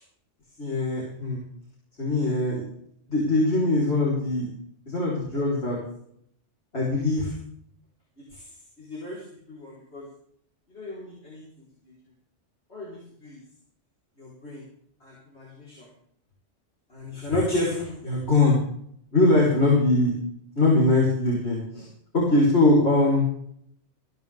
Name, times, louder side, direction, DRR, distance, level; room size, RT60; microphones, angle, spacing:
voice 1, 0.6-1.4 2.0-2.6 3.1-4.5 4.9-5.8 6.7-7.3 8.3-8.4 8.8-9.2 9.5-10.0 10.7-11.4 12.7-13.4 14.2-14.6 15.0-15.9 16.9-18.6 19.1-20.2 20.6-21.9 22.1-23.2, left 2 dB, 65° left, -5 dB, 4.3 m, -23 dB
20.5 x 15.0 x 3.5 m, 0.68 s
omnidirectional pair, 1.2 m